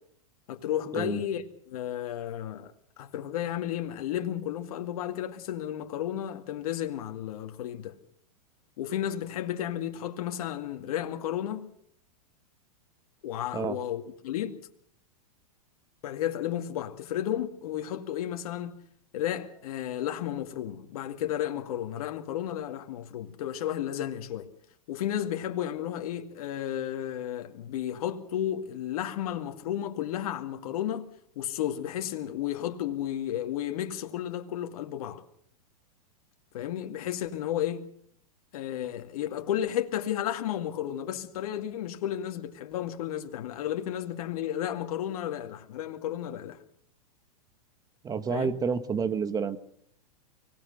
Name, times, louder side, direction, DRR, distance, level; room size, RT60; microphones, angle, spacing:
voice 1, 0.5-2.7 3.0-8.0 8.8-11.7 13.2-14.6 16.0-18.7 19.1-24.5 24.9-31.1 31.4-35.2 36.5-37.8 38.5-46.6 48.3-48.5, left 11 dB, 65° left, 2.2 m, -33 dB
voice 2, 48.0-49.6, right 6 dB, 20° right, 1.4 m, -29 dB
24.5 x 18.0 x 6.6 m
hypercardioid pair, 125°, 20 cm